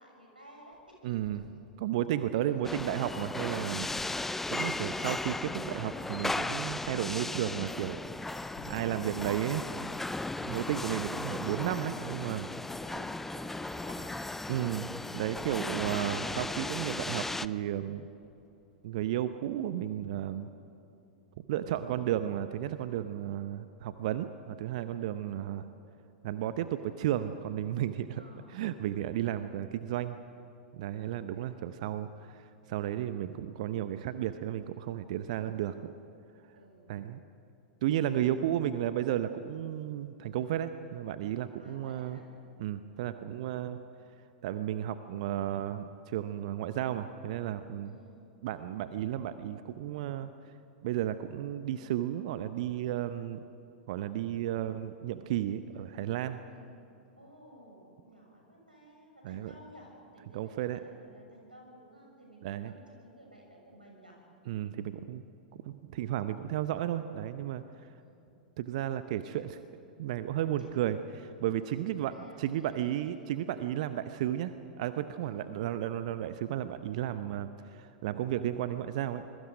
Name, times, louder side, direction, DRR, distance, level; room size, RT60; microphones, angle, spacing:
voice 1, 0.0-1.2 12.8-14.2 25.3-25.7 28.2-28.8 31.0-31.7 35.3-35.8 36.5-37.1 38.4-38.6 41.6-42.3 47.8-48.3 56.5-64.2 68.0-68.3 70.6-70.7 71.9-73.6 75.2-75.6, right 1 dB, 85° right, 0 dB, 6.5 m, -55 dB
sound 1, 0.7-1.9 2.2-2.3 2.6-11.2 11.6-12.4 12.6-14.7 15.1-15.2 15.4-19.5, left 2 dB, 50° left, 5.4 m, -56 dB
voice 2, 1.0-1.4 1.8-3.9 4.5-8.0 8.7-9.9 10.5-12.5 14.5-18.0 18.8-20.5 21.5-25.6 26.2-28.2 28.5-30.2 30.7-35.9 36.9-37.2 37.8-42.2 42.6-43.8 44.4-47.9 48.4-50.3 50.8-53.4 53.9-56.4 59.2-59.5 60.3-60.8 62.4-62.7 64.5-65.2 65.5-67.6 68.6-69.6 70.0-79.2, right 11 dB, 50° right, 11 dB, 0.8 m, -33 dB
sound 2, 2.6-17.5, left 2 dB, 5° left, 0.4 m, -36 dB
26.0 x 22.0 x 5.2 m, 2.8 s
figure-of-eight pair, 95°, 5 cm